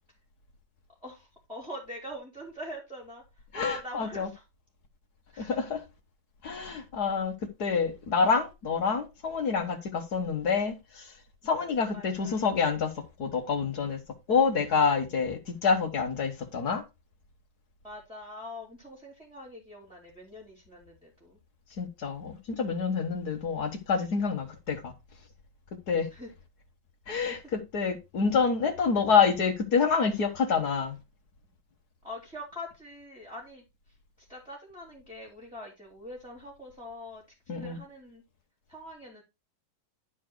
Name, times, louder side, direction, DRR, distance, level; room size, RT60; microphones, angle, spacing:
voice 1, 1.0-3.2 3.5-4.4 5.3-5.5 11.9-12.4 17.8-21.4 26.1-26.3 27.3-27.4 32.0-33.6 34.2-38.2 38.7-39.2, left 1 dB, ahead, 2.8 m, -43 dB
voice 2, 3.5-4.3 5.4-5.8 6.4-7.3 7.6-11.1 11.4-14.0 14.3-16.8 21.8-24.9 25.9-26.1 27.1-31.0 37.5-37.8, left 5 dB, 55° left, 1.6 m, -27 dB
11.5 x 4.6 x 4.5 m
omnidirectional pair, 2.2 m